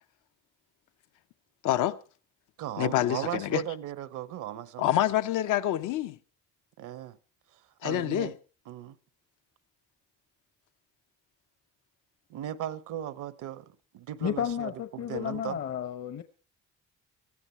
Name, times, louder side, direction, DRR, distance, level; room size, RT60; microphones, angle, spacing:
voice 1, 1.6-2.0 2.8-3.6 4.8-6.1 7.8-8.3, left 12 dB, 85° left, 0.8 m, -26 dB
voice 2, 2.6-5.0 6.8-7.2 7.8-8.3 8.7-9.0 12.3-15.6, right 12 dB, 85° right, 1.0 m, -37 dB
voice 3, 14.2-16.2, left 9 dB, 55° left, 0.9 m, -32 dB
18.5 x 14.5 x 4.4 m
cardioid pair, 90°, 30 cm